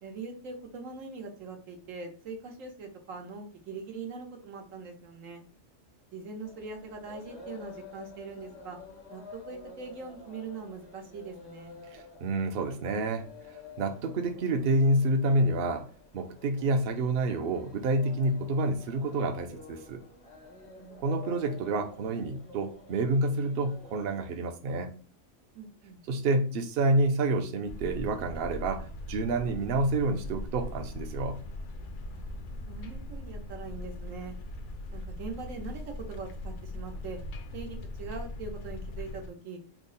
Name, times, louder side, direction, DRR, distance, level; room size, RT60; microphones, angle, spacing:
voice 1, 0.0-5.4 6.1-8.8 9.1-11.7 20.7-21.2 25.5-26.0 32.1-32.4 32.7-34.3 34.9-37.2 37.5-39.6, right 4 dB, 90° right, 3 dB, 1.2 m, -42 dB
sound 1, 6.4-24.3, left 4 dB, 40° left, 0.5 m, -50 dB
voice 2, 11.9-13.3 13.8-15.9 16.1-20.0 21.0-24.9 26.1-31.4, right 2 dB, 60° right, 6 dB, 0.7 m, -28 dB
sound 2, 27.6-39.3, left 1 dB, 70° left, 0.9 m, -40 dB
3.5 x 2.0 x 3.8 m, 0.38 s
omnidirectional pair, 1.3 m